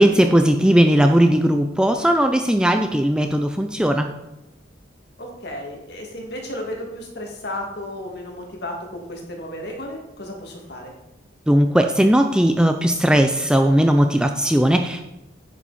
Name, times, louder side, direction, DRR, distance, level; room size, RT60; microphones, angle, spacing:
voice 1, 0.0-4.1 11.5-15.1, right 1 dB, 5° right, 5 dB, 0.4 m, -17 dB
voice 2, 5.2-10.9, left 1 dB, 60° left, 0 dB, 2.3 m, -33 dB
10.0 x 7.3 x 4.3 m, 0.94 s
head